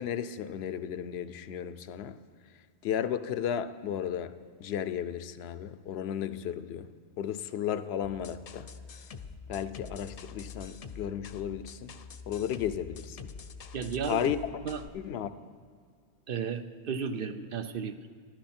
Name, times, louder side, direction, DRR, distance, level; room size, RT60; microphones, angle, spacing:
voice 1, 0.0-2.2 2.8-4.3 4.6-6.9 7.2-8.7 9.5-12.0 12.3-13.2 14.0-14.4 14.9-15.3, left 9 dB, 80° left, 12 dB, 0.8 m, -34 dB
sound 1, 8.0-14.9, left 5 dB, 50° left, 0.5 m, -45 dB
voice 2, 13.7-14.3 14.6-14.8 16.3-18.1, right 6 dB, 60° right, 9 dB, 0.7 m, -34 dB
14.0 x 11.5 x 4.3 m, 2.1 s
omnidirectional pair, 1.1 m